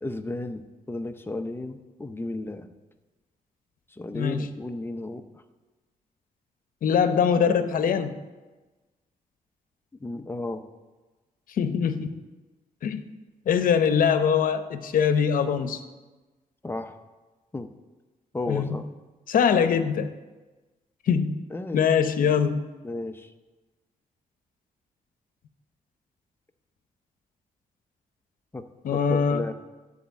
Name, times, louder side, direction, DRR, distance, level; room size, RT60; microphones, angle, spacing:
voice 1, 0.0-2.7 3.9-5.2 10.0-10.6 16.6-17.0 17.5-17.7 18.3-18.8 21.5-21.9 22.8-23.3 28.5-28.6 28.9-29.5, left 2 dB, 15° left, 8 dB, 0.6 m, -33 dB
voice 2, 4.1-4.5 6.8-8.1 11.6-12.1 12.8-13.0 13.5-15.8 18.5-18.8 19.3-20.1 21.1-21.4 21.7-22.6 28.8-29.4, left 7 dB, 70° left, 9 dB, 0.8 m, -22 dB
12.0 x 4.2 x 8.2 m, 1.2 s
cardioid pair, 110°, 15 cm